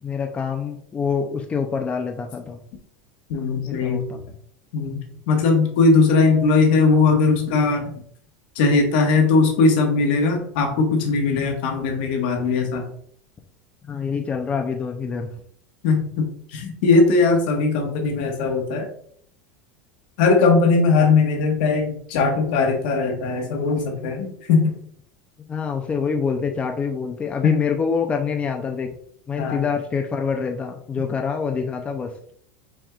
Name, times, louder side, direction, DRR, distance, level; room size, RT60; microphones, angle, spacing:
voice 1, 0.0-2.6 3.6-4.2 13.9-15.3 25.5-28.9 29.3-32.3, left 5 dB, 20° left, 3 dB, 0.5 m, -26 dB
voice 2, 3.3-4.0 4.7-5.0 5.3-7.9 8.5-12.9 15.8-16.3 16.5-18.9 20.2-24.7 27.4-27.6 29.4-29.6, left 4 dB, 70° left, 3 dB, 1.3 m, -19 dB
6.1 x 3.4 x 2.4 m, 0.64 s
supercardioid pair, 115°, 5 cm